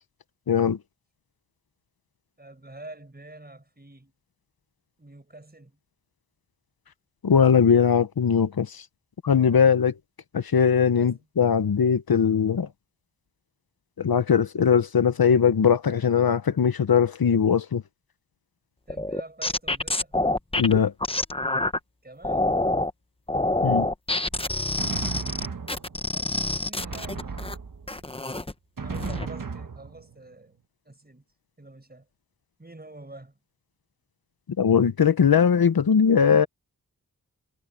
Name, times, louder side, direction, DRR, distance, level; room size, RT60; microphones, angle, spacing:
voice 1, 0.5-0.8 7.2-8.8 9.2-9.9 10.3-12.7 14.0-17.8 20.6-20.9 23.6-23.9 34.6-36.5, left 7 dB, 75° left, 0.9 m, -20 dB
voice 2, 2.4-4.1 5.0-5.8 10.9-11.3 18.9-20.1 22.0-22.6 25.9-27.4 28.8-30.6 30.8-31.2 31.6-32.1 32.6-33.4, right 2 dB, 25° right, 5.7 m, -46 dB
sound 1, 18.9-21.8 22.2-22.9 23.3-27.5 27.9-28.5 28.9-29.3, left 2 dB, 15° left, 0.9 m, -26 dB
Drum, 24.3-26.2 26.8-28.1 28.8-30.3, right 5 dB, 60° right, 1.5 m, -36 dB
wide cardioid pair, 90°, 36 cm